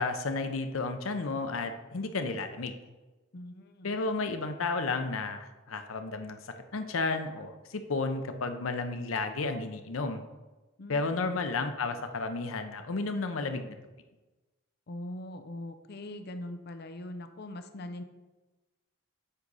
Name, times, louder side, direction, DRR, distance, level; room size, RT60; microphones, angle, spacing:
voice 1, 0.0-2.7 3.8-10.2 10.9-13.8, left 3 dB, 90° left, 7 dB, 0.7 m, -32 dB
voice 2, 3.3-3.9 10.8-11.3 14.9-18.0, left 1 dB, 50° left, 8 dB, 0.6 m, -41 dB
7.9 x 4.8 x 4.0 m, 1.2 s
head